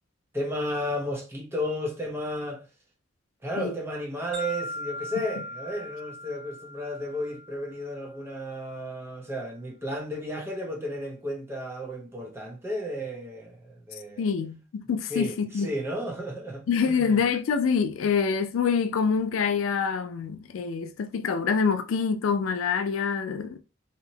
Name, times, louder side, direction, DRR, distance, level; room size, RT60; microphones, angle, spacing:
voice 1, 0.3-2.7 3.4-14.3 15.1-17.2, equal, 10° right, 0.6 m, -33 dB
sound 1, 4.3-8.3, left 1 dB, 70° right, 1.2 m, -39 dB
voice 2, 14.2-15.7 16.7-23.6, left 6 dB, 85° left, 0.3 m, -26 dB
2.8 x 2.1 x 2.7 m
head